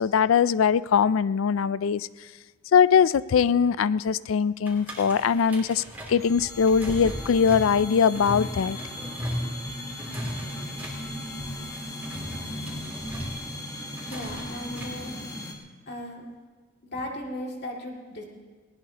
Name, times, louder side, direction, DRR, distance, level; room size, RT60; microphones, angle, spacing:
voice 1, 0.0-2.1 2.7-5.8 6.1-8.8, left 6 dB, 85° left, 18 dB, 0.4 m, -21 dB
sound 1, 4.6-15.1, equal, 10° right, 3.2 m, -37 dB
sound 2, 6.2-15.5, left 1 dB, 15° left, 1.3 m, -37 dB
voice 2, 14.1-15.2 15.9-16.2 16.8-18.2, left 1 dB, 55° left, -1 dB, 2.4 m, -36 dB
19.0 x 19.0 x 2.9 m, 1.4 s
head